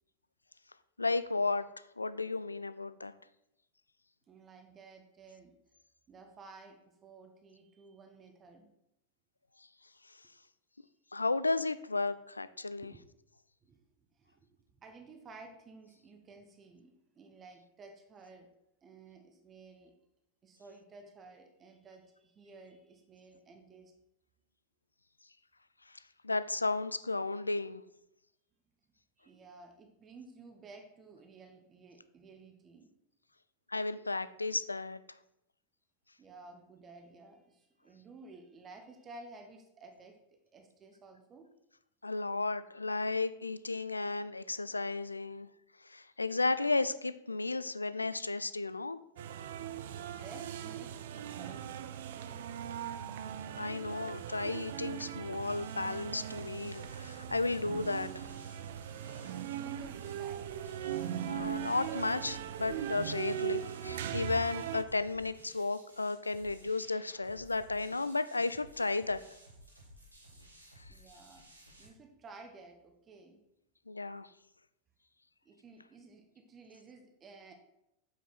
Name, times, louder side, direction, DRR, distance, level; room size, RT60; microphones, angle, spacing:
voice 1, 1.0-1.6 2.0-3.1 11.1-12.9 26.2-27.8 33.7-35.0 42.0-45.5 45.8-49.0 53.6-58.3 61.3-69.2 70.9-71.0 73.9-74.3, left 3 dB, 80° left, 15 dB, 0.3 m, -33 dB
voice 2, 4.3-5.6 6.1-8.7 12.8-13.0 13.6-18.5 18.8-20.0 20.4-23.9 29.2-32.9 36.2-41.5 50.1-51.7 52.0-52.6 59.4-60.6 70.2-70.4 70.9-71.4 71.8-73.4 75.4-77.5, right 3 dB, 25° right, 5 dB, 1.0 m, -54 dB
sound 1, 49.2-64.8, right 10 dB, 55° right, 0.4 m, -40 dB
sound 2, 55.4-71.9, equal, 85° right, 1.3 m, -57 dB
7.5 x 5.5 x 4.2 m, 0.82 s
figure-of-eight pair, 90°, 0 cm